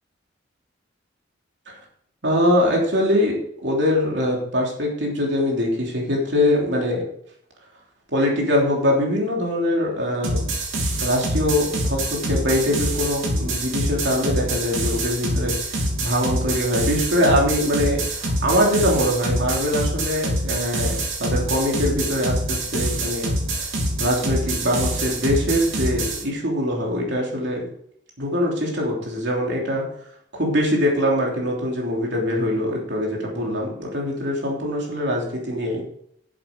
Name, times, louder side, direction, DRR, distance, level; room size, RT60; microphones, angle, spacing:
voice 1, 2.2-7.0 8.1-10.4 11.0-23.3 24.0-27.7 28.2-29.8 30.3-35.8, left 1 dB, 65° right, -2 dB, 3.2 m, -23 dB
sound 1, 10.2-26.2, right 1 dB, 90° right, 2.9 m, -25 dB
11.0 x 7.8 x 5.2 m, 0.69 s
head